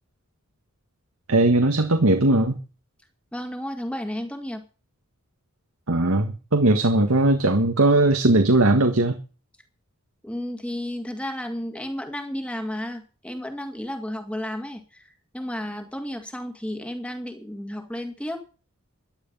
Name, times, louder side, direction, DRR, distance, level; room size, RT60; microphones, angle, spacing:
voice 1, 1.3-2.6 5.9-9.2, right 2 dB, 75° right, 6 dB, 1.7 m, -19 dB
voice 2, 3.3-4.6 10.2-18.4, left 1 dB, 5° left, 6 dB, 2.0 m, -32 dB
14.5 x 11.5 x 5.6 m, 0.35 s
head